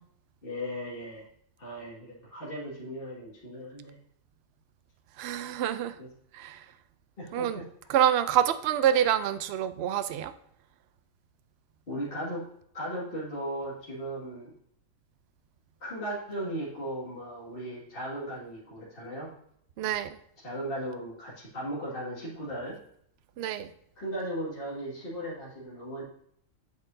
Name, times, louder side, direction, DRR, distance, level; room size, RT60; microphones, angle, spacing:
voice 1, 0.4-1.3 1.6-4.0 6.0-6.1 7.2-7.6 11.9-12.5 12.7-14.5 15.8-19.3 20.4-22.8 24.0-26.0, equal, 45° left, 2.2 m, -37 dB
voice 2, 5.2-5.9 6.3-6.6 7.3-7.6 7.9-10.3 19.8-20.1 23.4-23.7, right 10 dB, 65° right, 0.7 m, -26 dB
8.1 x 7.8 x 2.6 m
omnidirectional pair, 1.3 m